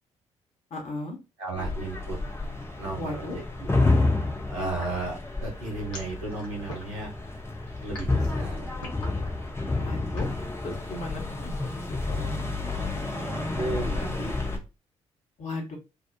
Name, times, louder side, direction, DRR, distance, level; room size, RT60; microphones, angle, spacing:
voice 1, 0.7-1.2 3.0-3.4 9.8-10.3 10.6-12.2 15.4-15.8, left 2 dB, 45° left, 1 dB, 1.1 m, -36 dB
voice 2, 1.4-2.2 2.8-3.7 4.5-7.1 7.8-8.7 12.1-14.6, right 2 dB, 80° right, -3 dB, 1.1 m, -35 dB
sound 1, 1.6-14.6, left 2 dB, 15° left, 0.8 m, -30 dB
sound 2, 4.8-10.4, left 2 dB, 75° left, 0.8 m, -43 dB
2.8 x 2.3 x 2.3 m, 0.28 s
figure-of-eight pair, 45°, 16 cm